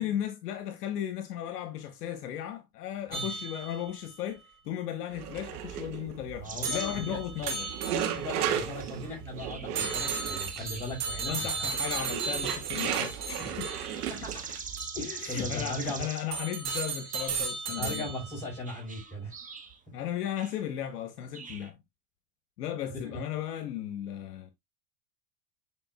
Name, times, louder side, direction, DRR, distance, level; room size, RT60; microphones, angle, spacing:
voice 1, 0.0-7.7 11.2-13.7 15.2-18.1 19.9-21.8 22.6-24.5, left 10 dB, 80° left, 1.3 m, -36 dB
sound 1, 3.1-4.1 6.6-8.4 9.8-14.1 14.8-15.0 16.3-18.4, right 4 dB, 35° right, 3.1 m, -35 dB
sound 2, 5.1-14.8, right 9 dB, 75° right, 2.1 m, -36 dB
voice 2, 6.4-7.2 8.1-11.7 13.4-13.6 14.1-14.5 14.9-16.1 17.7-19.3 22.9-23.2, left 1 dB, 15° left, 4.9 m, -38 dB
sound 3, 6.4-7.0 7.4-8.2 8.8-9.0 9.4-10.2 10.6-11.0 12.2-16.4 16.7-17.6 18.7-19.8 20.4-20.6 21.2-21.7, right 5 dB, 15° right, 1.3 m, -44 dB
8.8 x 4.8 x 2.3 m
supercardioid pair, 115°, 46 cm